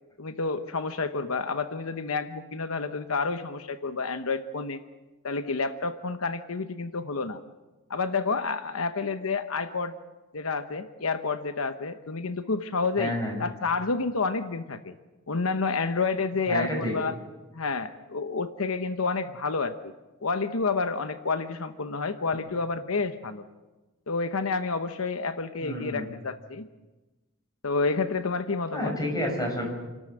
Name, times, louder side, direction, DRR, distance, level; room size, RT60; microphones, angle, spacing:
voice 1, 0.2-4.8 5.2-7.4 7.9-9.9 10.3-14.9 15.3-17.1 17.5-19.9 20.2-23.4 24.1-26.7 27.6-28.9, left 4 dB, 90° left, 10 dB, 0.9 m, -29 dB
voice 2, 13.0-13.4 16.5-16.9 25.6-26.1 28.7-29.6, left 1 dB, 20° left, 1 dB, 6.0 m, -29 dB
28.5 x 13.0 x 7.7 m, 1.2 s
head